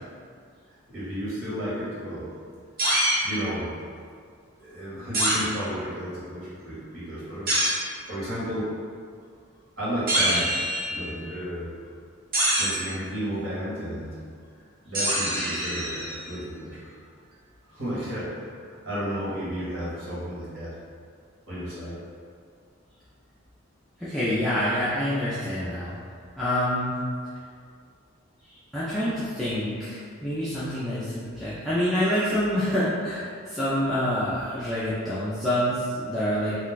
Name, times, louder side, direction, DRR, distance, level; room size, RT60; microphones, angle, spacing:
voice 1, 0.9-2.3 3.2-3.8 4.6-7.7 8.1-8.7 9.8-10.6 10.9-11.7 12.6-14.2 14.5-16.9 17.7-20.8 21.5-22.0, equal, 65° right, -10 dB, 1.2 m, -33 dB
sound 1, 2.8-3.2 5.1-5.4 7.5-7.8 10.1-11.0 12.3-12.9 14.9-16.3, right 1 dB, 45° right, 0.7 m, -24 dB
voice 2, 24.0-25.9 26.4-27.0 28.7-36.6, equal, ahead, -12 dB, 0.3 m, -27 dB
2.3 x 2.2 x 3.8 m, 2.1 s
head